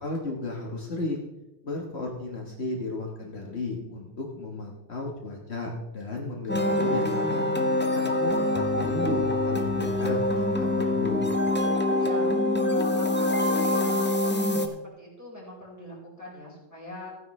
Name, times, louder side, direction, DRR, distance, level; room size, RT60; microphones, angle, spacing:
voice 1, 0.0-1.3 1.6-7.5 7.9-11.3, left 2 dB, 60° left, -1 dB, 1.7 m, -34 dB
sound 1, 6.5-14.7, left 1 dB, 10° left, 0.8 m, -25 dB
voice 2, 12.0-12.3 12.6-14.7 15.0-17.1, left 2 dB, 15° right, -5 dB, 4.6 m, -41 dB
15.5 x 9.5 x 3.2 m, 0.96 s
omnidirectional pair, 1.3 m